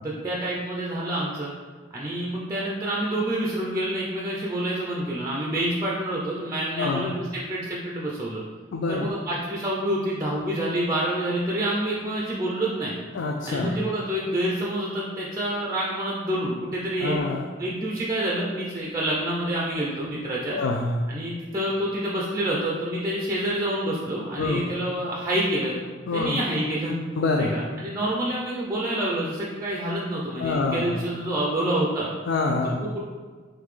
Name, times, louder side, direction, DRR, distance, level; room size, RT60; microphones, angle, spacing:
voice 1, 0.0-1.5 1.9-8.4 8.9-12.9 13.5-17.2 17.6-20.6 21.1-25.8 26.1-27.0 27.4-32.1 32.8-33.0, right 1 dB, 15° right, -4 dB, 0.5 m, -27 dB
voice 2, 6.8-7.1 8.7-9.1 13.1-13.8 17.0-17.5 20.5-21.0 24.4-24.7 26.1-26.4 27.2-27.5 30.4-30.9 32.3-32.8, left 3 dB, 75° left, 2 dB, 0.3 m, -26 dB
3.9 x 3.1 x 3.2 m, 1.5 s
head